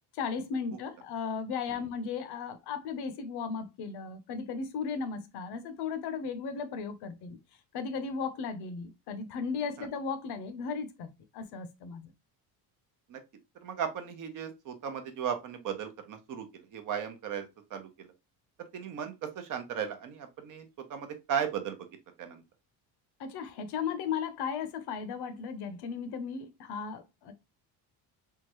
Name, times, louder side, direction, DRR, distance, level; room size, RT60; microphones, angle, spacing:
voice 1, 0.1-7.4 7.7-12.1 23.2-27.3, left 5 dB, 70° left, 0.7 m, -36 dB
voice 2, 13.6-18.1 18.6-21.9 22.2-22.4, right 8 dB, 50° right, 0.8 m, -36 dB
3.6 x 2.3 x 2.9 m
cardioid pair, 140°, 40 cm